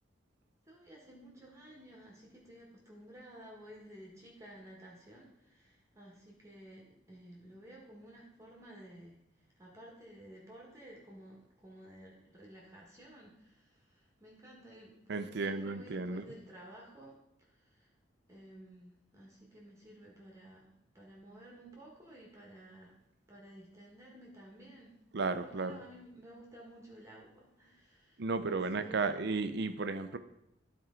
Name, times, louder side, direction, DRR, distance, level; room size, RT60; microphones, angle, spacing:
voice 1, 0.7-9.2 9.6-17.1 17.5-17.9 18.3-22.9 23.3-24.9 25.3-29.2, right 1 dB, 15° right, -3 dB, 1.4 m, -54 dB
voice 2, 15.1-16.2 25.1-25.8 28.2-30.2, right 3 dB, 60° right, 10 dB, 0.5 m, -34 dB
12.0 x 4.5 x 3.7 m, 0.82 s
head